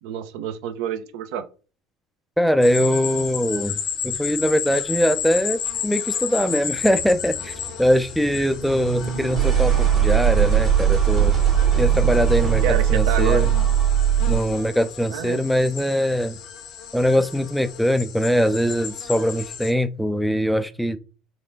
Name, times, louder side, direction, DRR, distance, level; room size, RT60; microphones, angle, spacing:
voice 1, 0.0-1.4 12.6-13.5 15.1-15.4, right 9 dB, 65° right, 0.4 m, -28 dB
voice 2, 2.4-3.8 4.0-11.3 11.8-12.6 12.9-13.5 14.3-16.4 16.9-21.0, equal, ahead, 0.3 m, -22 dB
sound 1, 2.6-19.7, left 8 dB, 50° left, 0.6 m, -33 dB
sound 2, 6.7-14.6, right 9 dB, 40° right, 1.1 m, -20 dB
4.1 x 2.4 x 2.6 m
figure-of-eight pair, 65°, 0 cm